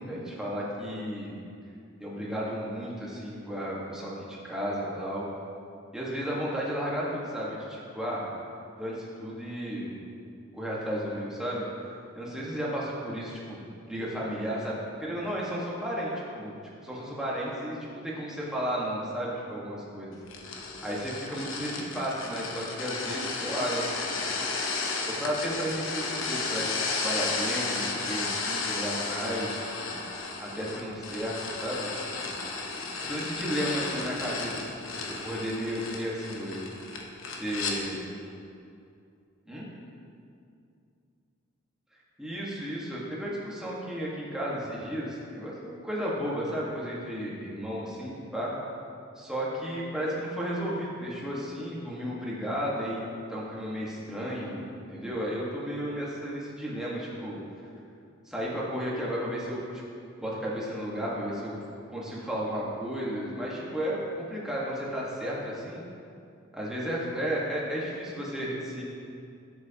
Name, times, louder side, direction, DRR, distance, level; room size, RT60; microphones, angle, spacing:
voice 1, 0.0-1.4 2.0-5.3 5.9-8.3 8.8-10.0 10.5-11.6 12.1-13.6 13.9-16.6 16.8-20.1 20.8-24.2 25.0-26.7 27.0-30.0 30.4-31.9 32.2-32.3 33.1-36.6 37.3-38.0 39.5-39.7 42.2-48.5 49.1-53.0 53.3-57.4 58.3-59.8 60.2-61.6 61.9-64.0 64.3-65.8 66.5-68.8, equal, 5° right, -6 dB, 1.4 m, -33 dB
sound 1, 20.3-37.8, left 3 dB, 90° left, 1.0 m, -33 dB
10.5 x 7.8 x 2.9 m, 2.5 s
head